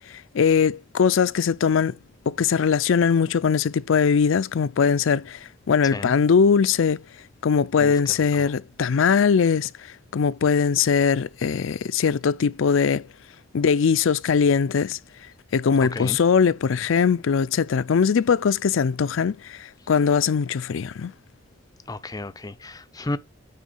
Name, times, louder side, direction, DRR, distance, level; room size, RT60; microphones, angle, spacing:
voice 1, 0.0-2.0 2.3-5.4 5.7-7.0 7.4-9.7 10.1-13.0 13.5-15.0 15.5-21.1, left 6 dB, 75° left, 0.4 m, -21 dB
voice 2, 7.8-8.5 15.9-16.2 21.9-23.2, left 2 dB, 20° left, 0.5 m, -33 dB
9.2 x 3.7 x 6.3 m
head